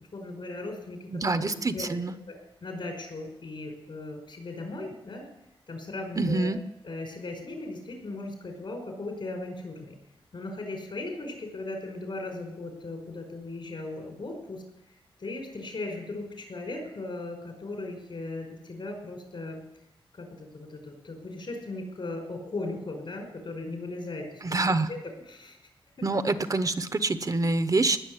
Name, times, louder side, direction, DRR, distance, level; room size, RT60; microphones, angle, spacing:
voice 1, 0.1-1.9 2.3-5.2 5.7-6.5 6.8-9.9 10.3-14.6 15.2-19.6 20.1-24.6 24.9-25.6 26.0-26.1, left 2 dB, 65° left, 3 dB, 5.3 m, -37 dB
voice 2, 1.1-2.1 6.2-6.6 24.4-24.9 26.0-28.0, right 2 dB, 40° right, 10 dB, 0.9 m, -26 dB
19.0 x 7.1 x 9.8 m, 0.88 s
wide cardioid pair, 90°, 9 cm